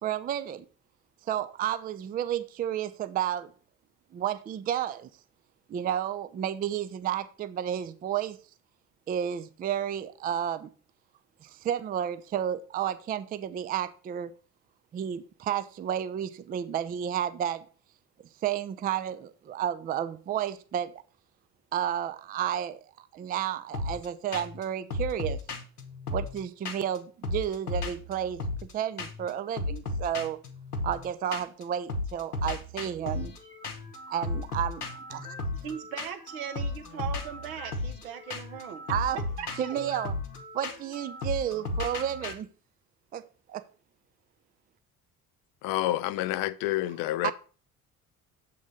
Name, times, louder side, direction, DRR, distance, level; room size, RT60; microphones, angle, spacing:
voice 1, 0.0-0.7 1.3-3.5 4.1-5.1 5.7-8.4 9.1-10.7 11.4-14.3 14.9-17.7 18.4-21.0 21.7-25.4 26.1-28.4 28.7-30.4 30.8-33.3 34.1-35.4 38.9-39.2 39.6-40.1 40.5-42.5 43.1-43.2 43.5-43.6 47.2-47.3, right 10 dB, 20° right, 0.4 m, -31 dB
sound 1, 23.7-24.1 24.3-24.6 24.9-27.0 27.2-28.7 29.0-29.3 29.6-31.6 31.9-42.3, left 2 dB, 85° left, 0.8 m, -35 dB
voice 2, 35.6-38.8 39.1-39.9, right 8 dB, 70° right, 1.1 m, -39 dB
voice 3, 45.6-47.3, left 15 dB, 50° left, 0.5 m, -28 dB
7.2 x 3.8 x 6.0 m
figure-of-eight pair, 50°, 44 cm